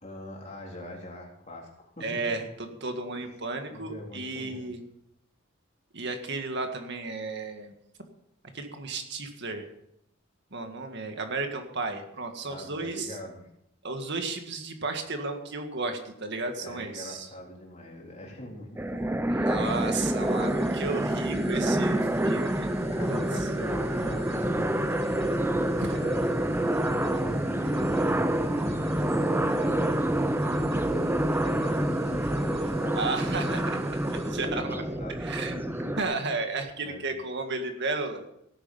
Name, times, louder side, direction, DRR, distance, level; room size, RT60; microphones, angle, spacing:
voice 1, 0.0-2.4 3.1-3.2 3.6-4.7 12.4-13.4 16.6-21.0 22.9-26.3 27.0-28.6 29.2-30.1 31.4-33.6 34.1-35.9 36.8-37.1, left 1 dB, 35° left, -1 dB, 3.7 m, -43 dB
voice 2, 2.0-4.8 5.9-7.7 8.5-9.7 10.5-13.2 13.8-17.3 19.4-23.2 25.8-26.0 32.9-33.6 34.2-34.8 35.2-35.6 36.0-38.2, right 3 dB, 55° right, 5 dB, 1.9 m, -33 dB
sound 1, 18.8-36.0, right 1 dB, 10° right, 0.7 m, -27 dB
sound 2, 19.6-34.5, equal, 30° right, 2.5 m, -46 dB
17.5 x 10.0 x 5.6 m, 0.75 s
head